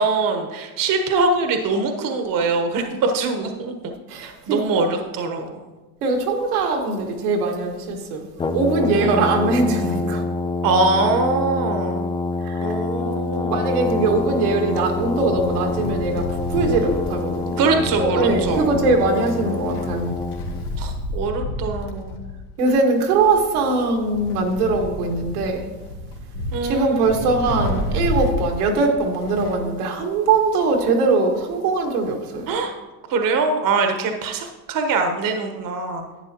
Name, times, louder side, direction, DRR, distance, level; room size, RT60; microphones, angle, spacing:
voice 1, 0.0-3.9 4.2-5.6 8.9-9.3 10.6-12.0 12.6-13.6 17.6-18.7 20.8-22.2 26.5-27.0 27.7-27.8 32.5-32.7 33.1-36.0, right 3 dB, 45° right, 5 dB, 1.2 m, -23 dB
voice 2, 4.1-4.6 6.0-8.2 8.5-10.2 12.4-12.7 13.5-17.6 18.0-20.1 22.6-25.6 26.6-32.5, right 3 dB, 85° right, 1 dB, 1.9 m, -21 dB
Brass instrument, 8.4-20.7, left 3 dB, 10° left, 0.4 m, -26 dB
Wind, 13.1-29.7 30.0-30.1 31.1-31.2, left 1 dB, 75° left, 1.6 m, -31 dB
11.5 x 8.8 x 3.0 m, 1.2 s
hypercardioid pair, 85°, 44 cm